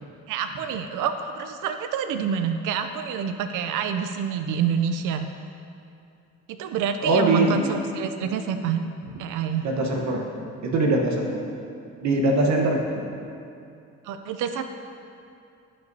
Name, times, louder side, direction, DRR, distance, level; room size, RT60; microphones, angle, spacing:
voice 1, 0.3-5.3 6.5-8.8 9.2-9.7 14.0-14.6, right 7 dB, 90° right, 8 dB, 0.5 m, -27 dB
voice 2, 7.0-7.7 9.6-10.2 10.6-11.3 12.0-13.1, right 2 dB, 65° right, 1 dB, 1.0 m, -22 dB
16.0 x 5.4 x 2.7 m, 2.5 s
cardioid pair, 90°, 30 cm